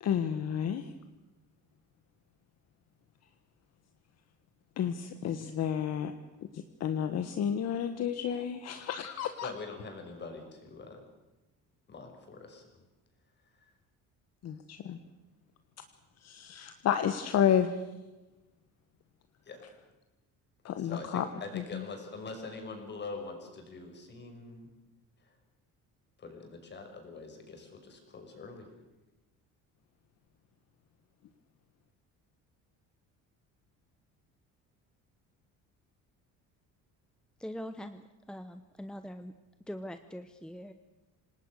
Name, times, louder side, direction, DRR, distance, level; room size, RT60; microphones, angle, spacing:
voice 1, 0.0-0.8 4.8-6.1 6.5-9.5 14.4-15.0 16.2-17.7 20.6-21.3 21.5-21.9, left 9 dB, 55° left, 9 dB, 1.4 m, -31 dB
voice 2, 9.4-11.0 11.9-12.7 13.6-13.7 19.4-19.6 20.8-24.7 25.2-25.3 26.2-28.7, left 3 dB, 35° left, 4 dB, 5.8 m, -44 dB
voice 3, 37.4-39.3 39.7-40.7, equal, ahead, 9 dB, 0.9 m, -42 dB
27.5 x 19.0 x 6.6 m, 1.1 s
cardioid pair, 145°, 32 cm